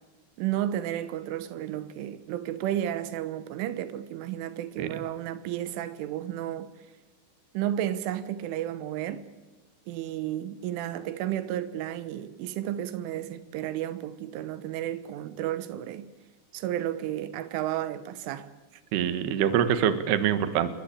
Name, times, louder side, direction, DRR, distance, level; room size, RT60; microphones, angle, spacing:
voice 1, 0.4-6.7 7.6-9.3 9.9-16.1 16.5-18.5, right 12 dB, 90° right, 3.7 m, -32 dB
voice 2, 18.9-20.7, right 9 dB, 65° right, 3.3 m, -24 dB
28.5 x 23.0 x 8.8 m
omnidirectional pair, 5.4 m